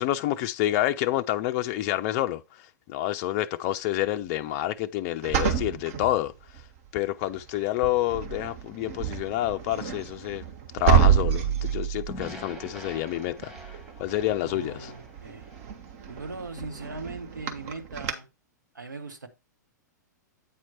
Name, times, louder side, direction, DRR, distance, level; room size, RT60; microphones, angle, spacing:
voice 1, 0.0-6.3 6.9-10.4 10.7-14.9, left 14 dB, 40° left, 0.4 m, -28 dB
sound 1, 5.2-6.8 7.3-7.6 7.8-18.1, right 8 dB, 50° right, 1.1 m, -29 dB
sound 2, 12.1-16.4, right 1 dB, 5° right, 1.5 m, -45 dB
voice 2, 14.4-15.5 16.1-18.3 18.7-19.3, right 3 dB, 85° right, 1.2 m, -39 dB
8.5 x 4.5 x 4.2 m
figure-of-eight pair, 105°, 10 cm